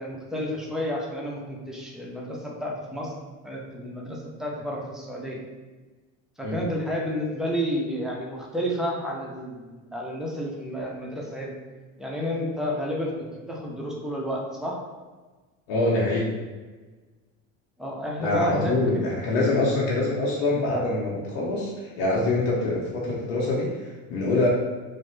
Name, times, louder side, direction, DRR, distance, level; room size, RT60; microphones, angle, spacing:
voice 1, 0.0-3.1 3.4-5.4 6.4-11.5 12.0-13.1 13.5-14.8 17.8-18.7 19.0-19.1, equal, ahead, -3 dB, 0.5 m, -31 dB
voice 2, 15.7-16.3 18.2-24.5, left 2 dB, 75° left, -4 dB, 0.7 m, -25 dB
3.1 x 2.0 x 3.1 m, 1.3 s
supercardioid pair, 90°, 40 cm